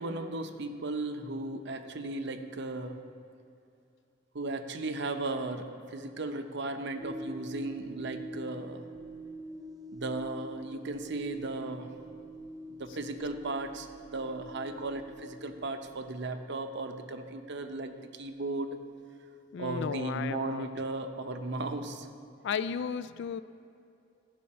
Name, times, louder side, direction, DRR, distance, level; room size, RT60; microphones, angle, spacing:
voice 1, 0.0-3.0 4.3-8.9 9.9-11.9 12.7-18.7 19.6-22.1, right 2 dB, 60° right, 7 dB, 0.7 m, -36 dB
sound 1, 7.0-16.1, equal, 20° right, 0.7 m, -45 dB
voice 2, 19.5-20.7 22.4-23.4, left 6 dB, 65° left, 13 dB, 0.3 m, -34 dB
14.5 x 5.6 x 4.2 m, 2.5 s
head